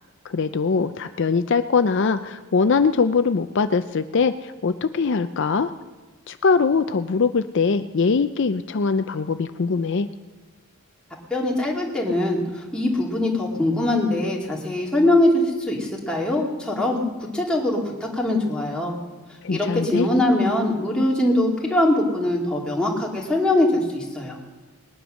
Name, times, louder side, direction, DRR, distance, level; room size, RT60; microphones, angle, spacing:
voice 1, 0.2-5.7 6.3-10.1 19.4-20.1, left 5 dB, 55° left, 10 dB, 0.5 m, -22 dB
voice 2, 11.3-17.8 18.1-18.9 19.5-24.4, left 1 dB, 5° left, -3 dB, 2.4 m, -22 dB
20.0 x 10.0 x 6.3 m, 1.3 s
head